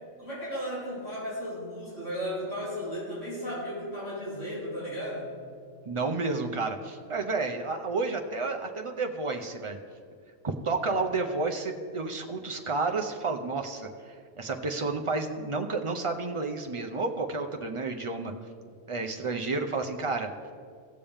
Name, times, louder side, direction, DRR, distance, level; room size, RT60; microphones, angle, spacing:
voice 1, 0.2-5.4, equal, 60° left, -9 dB, 3.7 m, -35 dB
voice 2, 5.9-9.8 10.4-18.3 18.9-20.3, right 3 dB, 55° right, 3 dB, 0.3 m, -31 dB
17.5 x 7.1 x 3.5 m, 2.2 s
omnidirectional pair, 1.4 m